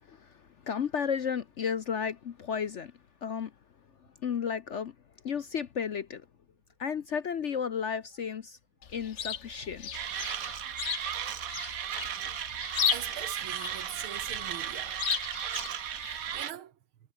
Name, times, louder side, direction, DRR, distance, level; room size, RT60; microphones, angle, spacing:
voice 1, 0.7-2.9 3.2-3.5 4.2-4.9 5.2-6.2 6.8-8.6 8.9-9.9, left 7 dB, 60° left, 0.7 m, -33 dB
Chirp tweet, 8.8-16.4, left 8 dB, 45° left, 1.0 m, -36 dB
Mechanisms, 9.9-16.5, right 9 dB, 50° right, 1.2 m, -35 dB
voice 2, 12.9-15.0 16.0-16.8, right 10 dB, 90° right, 2.1 m, -42 dB
omnidirectional pair, 2.2 m